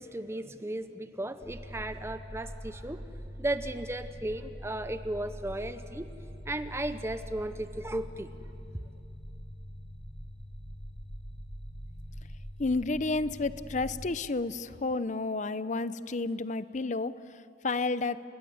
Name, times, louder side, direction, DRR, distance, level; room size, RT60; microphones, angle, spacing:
voice 1, 0.0-3.0 3.4-6.1 6.4-8.3, right 1 dB, 15° right, 10 dB, 0.8 m, -35 dB
sound 1, 1.4-14.1, equal, 5° left, 7.8 m, -44 dB
voice 2, 12.6-17.2 17.6-18.2, left 3 dB, 45° left, 15 dB, 0.7 m, -31 dB
30.0 x 20.0 x 9.6 m, 2.8 s
head